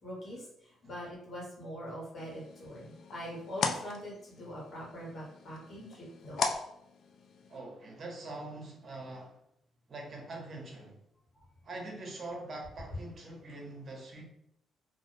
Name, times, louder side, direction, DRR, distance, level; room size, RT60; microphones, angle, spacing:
voice 1, 0.0-6.5, equal, 45° left, -5 dB, 1.3 m, -43 dB
sound 1, 2.2-7.6, left 5 dB, 65° left, 0.3 m, -39 dB
voice 2, 7.5-9.4 9.9-11.0 11.6-14.2, right 2 dB, 45° right, 0 dB, 0.9 m, -43 dB
2.4 x 2.4 x 3.2 m, 0.74 s
cardioid pair, 90°, 0 cm